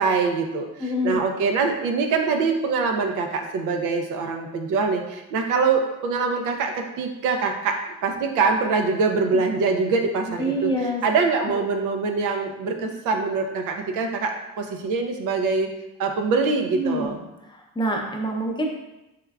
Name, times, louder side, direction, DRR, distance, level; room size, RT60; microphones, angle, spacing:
voice 1, 0.0-15.7 16.0-17.2, right 4 dB, 90° right, 4 dB, 0.5 m, -24 dB
voice 2, 0.8-1.2 10.4-11.0 11.4-11.5 16.7-17.2 17.5-18.7, equal, 15° left, 0 dB, 0.6 m, -26 dB
3.5 x 3.2 x 2.3 m, 0.95 s
cardioid pair, 90°, 30 cm